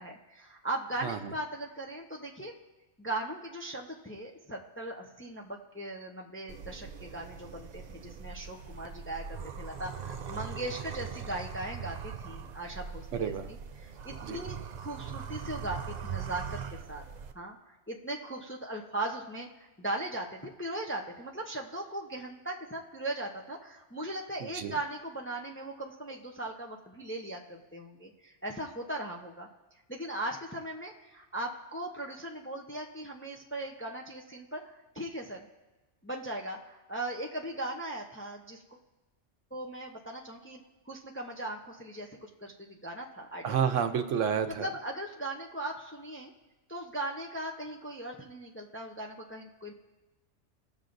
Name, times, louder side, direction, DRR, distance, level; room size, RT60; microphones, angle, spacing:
voice 1, 0.0-2.6 3.0-13.3 13.8-16.6 16.9-17.0 17.3-17.6 17.9-19.5 19.8-29.5 29.9-35.5 36.0-38.6 39.5-40.6 40.9-43.6 44.5-46.3 46.7-49.7, right 1 dB, 15° left, -1 dB, 0.6 m, -38 dB
sound 1, 6.5-17.3, right 7 dB, 55° right, 0.5 m, -41 dB
voice 2, 13.1-13.5 14.2-14.4 24.4-24.7 43.4-44.7, right 7 dB, 80° right, 8 dB, 1.1 m, -30 dB
19.0 x 6.9 x 2.6 m, 1.1 s
omnidirectional pair, 1.3 m